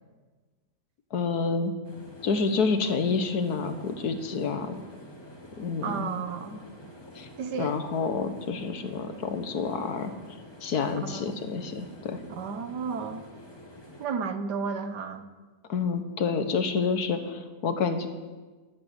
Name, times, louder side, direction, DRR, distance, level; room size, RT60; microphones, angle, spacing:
voice 1, 1.1-1.7 2.2-4.8 5.6-6.2 7.1-7.3 7.6-10.1 10.6-12.2 15.7-18.1, left 5 dB, 60° left, 8 dB, 1.6 m, -28 dB
sound 1, 1.8-14.1, left 1 dB, 15° left, 1.9 m, -48 dB
voice 2, 5.8-6.5 7.4-7.8 11.0-11.4 12.3-13.3 14.0-15.2, right 5 dB, 70° right, 9 dB, 1.6 m, -33 dB
12.0 x 11.5 x 8.1 m, 1.3 s
omnidirectional pair, 1.9 m